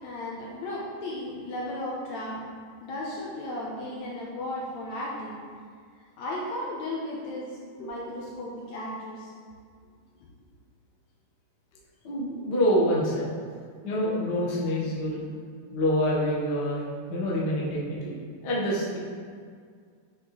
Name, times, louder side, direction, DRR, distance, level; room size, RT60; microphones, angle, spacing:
voice 1, 0.0-2.4 2.8-5.4 6.2-9.3, left 1 dB, 70° left, -4 dB, 2.0 m, -35 dB
voice 2, 12.0-13.3 13.8-15.2 15.7-16.8 17.1-18.1 18.4-19.0, equal, 45° left, -6 dB, 1.4 m, -26 dB
8.7 x 6.2 x 3.2 m, 2.1 s
omnidirectional pair, 3.7 m